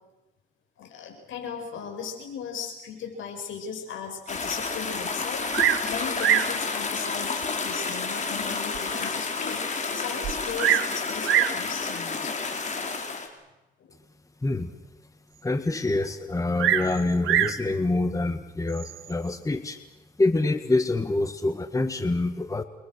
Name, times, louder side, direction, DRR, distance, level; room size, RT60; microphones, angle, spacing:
voice 1, 0.8-12.5 13.8-13.9, left 6 dB, 75° left, 3 dB, 7.9 m, -37 dB
sound 1, 4.3-13.3, left 4 dB, 35° left, 5.1 m, -30 dB
Bird vocalization bird call bird song, 5.5-5.9 6.2-6.6 7.4-7.5 8.1-8.2 8.7-8.8 9.0-9.1 10.2-10.9 11.2-11.6 12.6-12.9 16.6-17.6 18.7-19.1, right 12 dB, 85° right, 1.7 m, -24 dB
voice 2, 15.4-19.8 20.2-22.6, left 2 dB, 15° left, 9 dB, 1.8 m, -26 dB
29.5 x 23.5 x 6.8 m, 1.0 s
cardioid pair, 90°, 20 cm